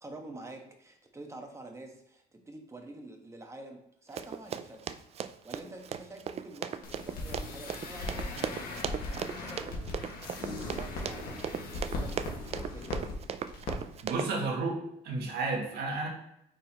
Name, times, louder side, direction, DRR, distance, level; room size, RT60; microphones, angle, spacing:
voice 1, 0.0-4.8 5.4-10.1 10.4-13.2, right 2 dB, 15° right, 3 dB, 1.1 m, -47 dB
Run, 4.2-14.3, right 8 dB, 40° right, 0.3 m, -37 dB
sound 1, 6.8-13.1 13.5-13.7 14.0-14.1, left 2 dB, 60° left, 1.7 m, -38 dB
voice 2, 14.0-16.1, right 3 dB, 75° right, 0 dB, 1.7 m, -32 dB
9.0 x 3.9 x 2.9 m, 0.77 s
cardioid pair, 110°, 17 cm